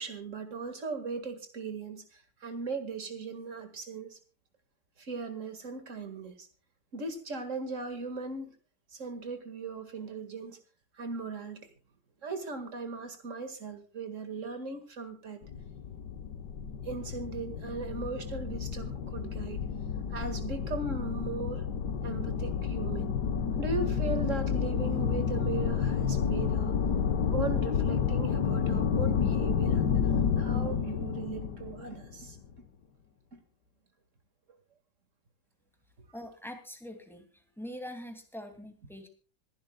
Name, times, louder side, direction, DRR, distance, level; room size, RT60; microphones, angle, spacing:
voice 1, 0.0-4.2 5.0-6.5 6.9-8.6 8.9-10.6 10.9-11.7 12.2-15.4 16.8-19.6 20.1-21.6 22.0-23.1 23.6-26.8 27.3-32.4 33.3-33.4, right 4 dB, 50° right, 9 dB, 2.2 m, -38 dB
sound 1, 15.4-32.5, left 7 dB, 80° left, 1.7 m, -30 dB
voice 2, 36.1-39.1, equal, ahead, 4 dB, 2.5 m, -43 dB
25.5 x 11.5 x 2.3 m, 0.37 s
omnidirectional pair, 1.8 m